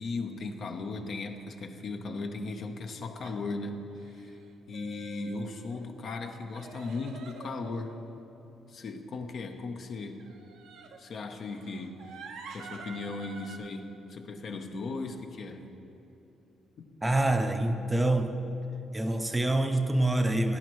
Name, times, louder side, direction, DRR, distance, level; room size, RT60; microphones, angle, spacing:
voice 1, 0.0-4.4 4.7-8.0 8.7-10.2 11.0-12.2 12.5-15.7 16.8-16.9, left 3 dB, 60° left, 5 dB, 0.9 m, -37 dB
sound 1, 3.2-3.4 3.9-4.4 4.7-5.8 6.5-8.3 10.2-11.0 11.5-13.6, right 4 dB, 90° right, 0.9 m, -47 dB
voice 2, 17.0-18.3 18.9-20.6, right 1 dB, 15° right, 7 dB, 0.7 m, -26 dB
17.5 x 10.0 x 3.1 m, 2.9 s
cardioid pair, 90°, 0 cm